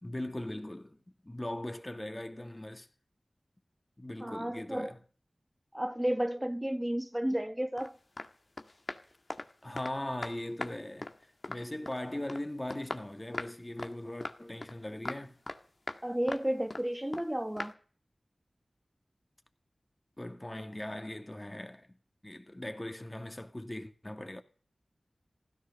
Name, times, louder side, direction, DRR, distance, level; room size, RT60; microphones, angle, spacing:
voice 1, 0.0-2.9 4.0-5.0 9.6-11.1 11.5-15.4 20.2-21.9 22.2-24.4, left 1 dB, 25° left, 2.3 m, -40 dB
voice 2, 4.2-4.9 5.7-8.0 16.0-17.7, right 1 dB, 15° right, 1.2 m, -32 dB
sound 1, 7.8-7.9 8.2-8.3 8.6-10.0 10.2-10.7 11.0-12.0 12.3-12.4 12.7-13.5 13.8-13.9 14.2-14.8 15.1-15.6 15.9-16.0 16.3-16.9 17.1-17.3 17.6-17.7, left 2 dB, 55° left, 1.8 m, -40 dB
16.0 x 13.0 x 6.7 m
cardioid pair, 40°, 0 cm